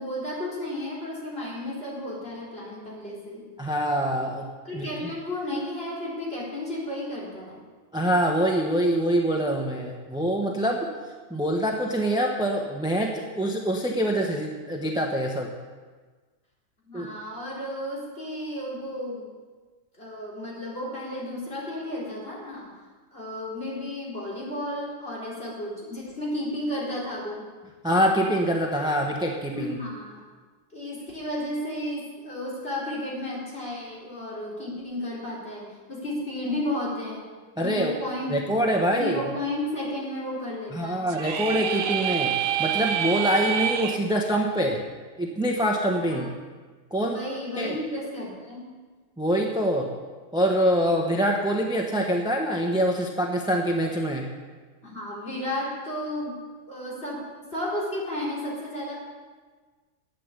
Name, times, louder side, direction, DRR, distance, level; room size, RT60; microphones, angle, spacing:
voice 1, 0.0-3.4 4.6-7.6 16.8-19.3 20.0-22.7 23.1-27.4 29.5-30.2 30.7-37.2 37.6-38.4 39.0-41.1 46.1-46.3 47.0-48.7 54.8-56.4 56.7-59.0, left 1 dB, 45° left, -5 dB, 4.3 m, -33 dB
voice 2, 3.6-4.5 4.7-5.1 7.9-10.9 11.3-15.5 16.9-17.1 27.8-29.7 37.6-38.0 38.3-39.2 40.7-42.3 42.6-44.8 45.2-46.3 46.9-47.2 47.6-47.8 49.2-49.9 50.3-54.3, equal, 5° right, 1 dB, 1.0 m, -25 dB
sound 1, 41.1-44.0, right 9 dB, 70° right, 1.1 m, -27 dB
11.5 x 8.6 x 8.3 m, 1.4 s
omnidirectional pair, 1.4 m